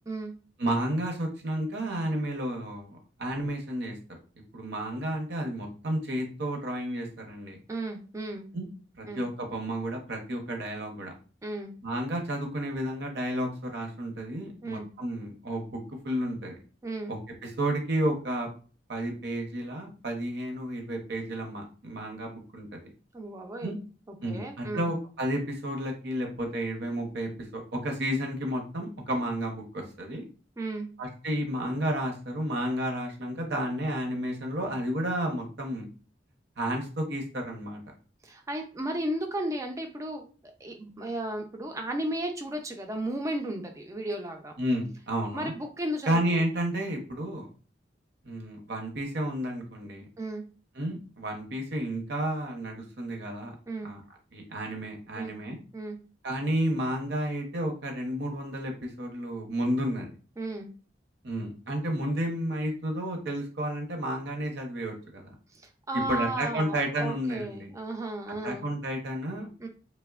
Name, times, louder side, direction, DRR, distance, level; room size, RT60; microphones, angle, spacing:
voice 1, 0.6-4.0 4.5-7.6 8.5-8.7 9.0-11.1 11.8-16.6 17.1-18.5 18.9-22.8 23.6-23.8 24.2-30.2 31.0-35.8 36.6-37.8 44.6-45.5 46.1-47.5 48.2-50.1 50.8-53.5 53.8-54.0 54.3-55.6 56.2-60.1 61.2-65.3 66.1-67.7 68.4-69.5, right 1 dB, 65° right, 2 dB, 0.7 m, -31 dB
voice 2, 7.7-8.5 9.1-9.2 11.4-11.7 14.6-14.9 16.8-17.1 23.1-23.7 24.1-24.9 30.6-30.9 38.2-44.5 45.3-46.4 50.2-50.4 53.7-53.9 55.2-55.3 55.7-56.0 60.4-60.7 65.5-68.7 69.6-69.7, right 1 dB, 15° right, 4 dB, 0.3 m, -34 dB
3.1 x 2.0 x 2.3 m, 0.37 s
head